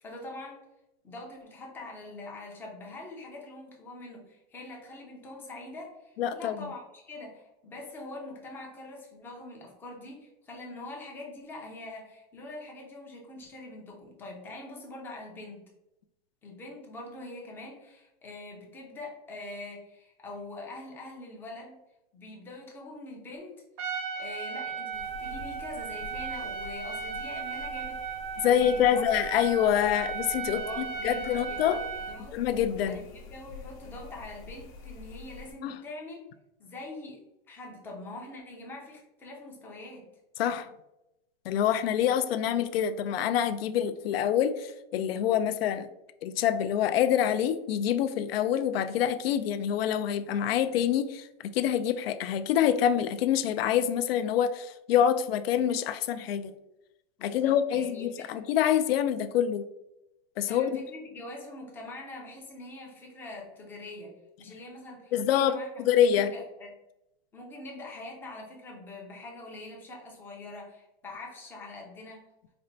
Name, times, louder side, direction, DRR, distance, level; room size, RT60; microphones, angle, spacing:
voice 1, 0.0-0.6 1.0-15.6 16.4-21.8 22.1-23.6 23.8-28.0 28.4-29.0 30.5-32.4 32.8-36.2 36.6-37.2 37.5-40.1 57.2-58.4 60.5-64.1 64.4-66.7 67.3-72.2, left 2 dB, 5° left, -2 dB, 0.4 m, -44 dB
voice 2, 6.2-6.7 28.4-31.8 32.3-33.0 35.6-35.8 40.4-40.7 41.5-45.9 46.2-56.5 57.2-59.7 60.4-60.8 65.1-66.3, left 9 dB, 80° left, 11 dB, 0.5 m, -26 dB
Trumpet, 23.8-32.2, right 6 dB, 55° right, 0.6 m, -36 dB
sound 1, 24.9-35.5, left 4 dB, 30° left, 0.8 m, -46 dB
4.3 x 2.1 x 3.8 m, 0.89 s
supercardioid pair, 165°, 29 cm